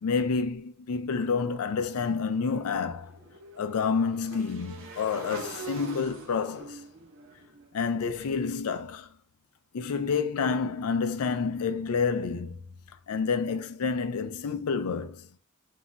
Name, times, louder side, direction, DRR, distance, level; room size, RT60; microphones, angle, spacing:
voice 1, 0.0-3.2 3.6-6.8 7.7-9.1 9.7-12.6 13.1-15.3, left 5 dB, 85° left, 0.4 m, -29 dB
Motorcycle / Engine, 2.4-8.5, right 3 dB, 60° right, 0.6 m, -44 dB
2.3 x 2.1 x 3.8 m
head